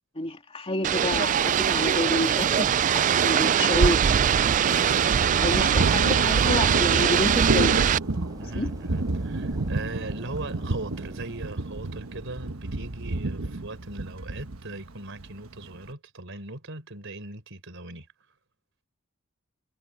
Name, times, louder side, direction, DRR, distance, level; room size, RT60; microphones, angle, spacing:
voice 1, 0.1-4.1 5.4-7.8 8.6-8.7, left 1 dB, 30° left, 2.7 m, -29 dB
sound 1, 0.8-8.0, right 8 dB, 35° right, 0.3 m, -22 dB
Thunder, 1.1-15.9, right 2 dB, 80° right, 1.2 m, -31 dB
sound 2, 3.9-14.4, equal, 20° right, 5.3 m, -49 dB
voice 2, 5.0-5.6 8.4-18.1, right 2 dB, 65° right, 4.6 m, -39 dB
head